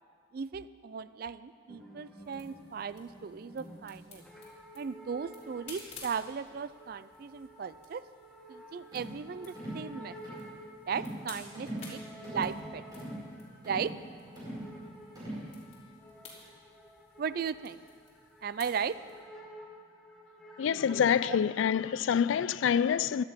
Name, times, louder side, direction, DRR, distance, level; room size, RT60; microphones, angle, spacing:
voice 1, 0.3-4.2 4.8-8.0 8.5-10.2 10.9-13.1 13.6-13.9 17.2-17.9 18.4-19.0 21.2-21.4 22.9-23.0, right 6 dB, 50° right, 0.3 m, -37 dB
sound 1, 1.7-21.4, equal, 5° left, 1.3 m, -52 dB
sound 2, 2.2-19.2, left 4 dB, 35° left, 3.0 m, -55 dB
sound 3, 8.9-9.2 9.5-9.9 10.2-10.5 10.9-11.3 11.5-11.9 12.2-12.6 12.9-13.2 13.6-14.0 14.4-14.7 15.1-15.5, right 1 dB, 20° right, 4.8 m, -40 dB
voice 2, 20.6-23.2, left 8 dB, 85° left, 0.3 m, -26 dB
16.5 x 11.5 x 5.1 m
head